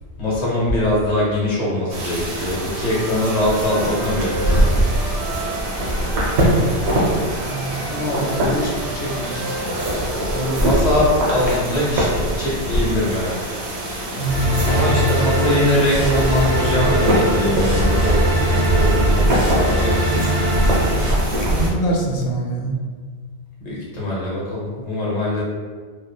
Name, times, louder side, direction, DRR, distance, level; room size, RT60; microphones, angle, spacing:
voice 1, 0.2-4.8 10.3-13.5 14.7-20.0 23.6-25.4, left 1 dB, 40° left, -6 dB, 0.9 m, -22 dB
sound 1, 1.9-21.7, right 1 dB, 80° right, 1.0 m, -22 dB
Wind instrument woodwind instrument, 2.5-6.4 7.2-10.9, right 2 dB, 60° right, 1.2 m, -34 dB
voice 2, 7.4-9.4 14.1-15.2 21.4-22.7, equal, 75° left, -1 dB, 0.8 m, -25 dB
sound 2, 14.3-21.1, equal, 35° right, 1.2 m, -21 dB
2.7 x 2.3 x 2.2 m, 1.5 s
omnidirectional pair, 1.1 m